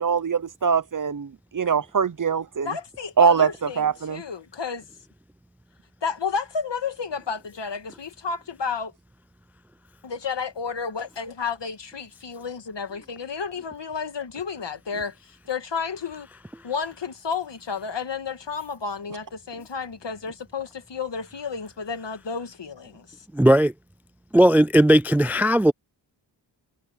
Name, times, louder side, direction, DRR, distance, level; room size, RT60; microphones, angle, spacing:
voice 1, 0.0-2.8 3.2-4.2, right 6 dB, 45° right, 0.9 m, -23 dB
voice 2, 2.6-4.8 6.0-8.9 10.0-15.1 15.5-16.3 16.6-23.1, left 5 dB, 70° left, 2.4 m, -31 dB
voice 3, 23.4-23.7 24.3-25.7, right 1 dB, 5° right, 0.3 m, -17 dB
cardioid pair, 60°, 44 cm